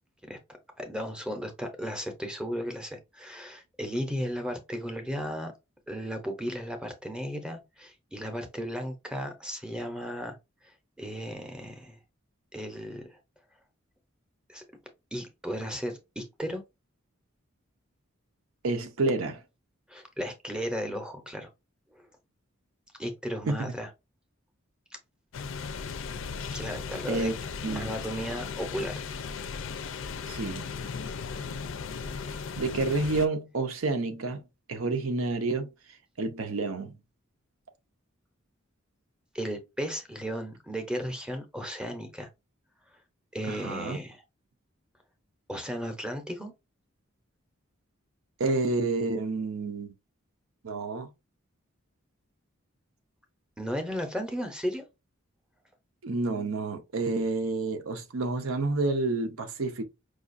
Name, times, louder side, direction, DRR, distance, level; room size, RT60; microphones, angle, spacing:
voice 1, 0.8-5.5 5.9-10.4 10.6-12.0 12.5-13.2 14.5-14.6 15.1-16.6 19.9-21.5 21.9-22.1 23.0-23.9 26.5-27.3 27.7-29.0 39.3-42.3 43.3-44.2 45.5-46.5 53.6-54.8, equal, 5° right, 0.6 m, -35 dB
voice 2, 18.6-19.4 23.5-23.7 27.1-27.3 27.6-27.9 30.3-30.6 32.6-34.4 34.7-35.7 36.2-37.0 43.5-44.0 48.4-49.9 50.6-51.1 56.0-59.8, right 3 dB, 85° right, 0.7 m, -29 dB
sound 1, 25.3-33.3, left 5 dB, 65° left, 0.4 m, -37 dB
4.9 x 2.4 x 2.5 m
head